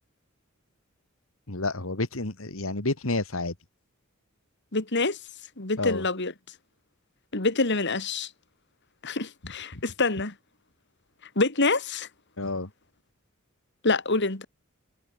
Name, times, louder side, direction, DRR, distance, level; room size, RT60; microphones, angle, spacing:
voice 1, 1.5-3.5 5.8-6.0 9.7-9.8 12.4-12.7, left 2 dB, 75° left, 2.3 m, -29 dB
voice 2, 4.7-5.2 5.6-6.3 7.3-8.3 9.0-10.3 11.4-12.1 13.8-14.5, left 3 dB, 60° left, 2.9 m, -26 dB
head